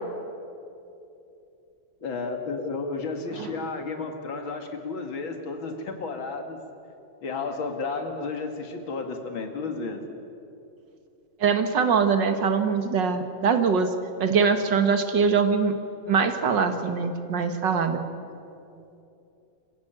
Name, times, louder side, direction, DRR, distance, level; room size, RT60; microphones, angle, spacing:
voice 1, 2.0-6.6 7.2-10.0, left 4 dB, 80° left, 5 dB, 2.8 m, -32 dB
voice 2, 11.4-13.9 14.2-15.7 16.1-18.0, right 5 dB, 65° right, 8 dB, 2.0 m, -23 dB
27.0 x 15.0 x 9.0 m, 2.7 s
omnidirectional pair, 2.2 m